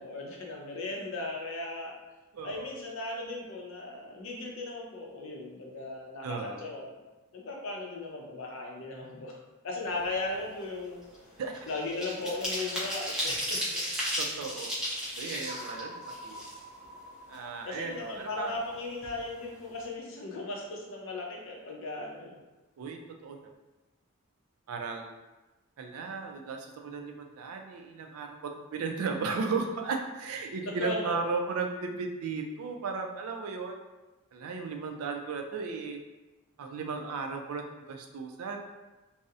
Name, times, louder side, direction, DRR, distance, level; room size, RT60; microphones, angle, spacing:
voice 1, 0.0-1.9 2.4-7.0 7.3-9.3 9.6-11.0 11.6-13.8 17.7-22.4 30.6-31.2, left 2 dB, 65° left, -1 dB, 0.5 m, -37 dB
voice 2, 2.3-2.7 6.2-6.7 11.4-11.7 14.2-14.8 15.2-16.4 17.3-18.5 22.8-23.5 24.7-25.1 25.8-33.8 34.3-36.0 36.6-38.6, right 4 dB, 80° right, 4 dB, 0.3 m, -35 dB
sound 1, 9.9-10.2 10.5-17.0 17.3-17.4 17.7-18.7 19.0-19.2 19.5-19.8, equal, 5° right, 0.5 m, -35 dB
sound 2, 15.4-19.7, equal, 35° right, 0.8 m, -47 dB
2.6 x 2.0 x 2.3 m, 1.1 s
head